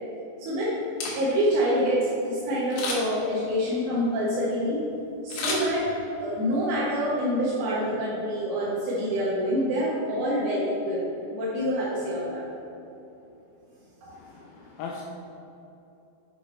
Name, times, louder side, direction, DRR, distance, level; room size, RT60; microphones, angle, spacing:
voice 1, 0.4-0.8 1.2-4.8 5.2-5.9 6.2-11.0 11.3-12.4 14.0-14.1, equal, 75° right, -9 dB, 3.7 m, -26 dB
Camera, 0.8-1.6 2.7-3.3 5.3-6.3 6.7-6.8, left 3 dB, 75° left, 3.9 m, -32 dB
voice 2, 14.1-15.0, left 5 dB, 90° left, -1 dB, 2.6 m, -39 dB
8.4 x 6.4 x 3.3 m, 2.9 s
omnidirectional pair, 5.9 m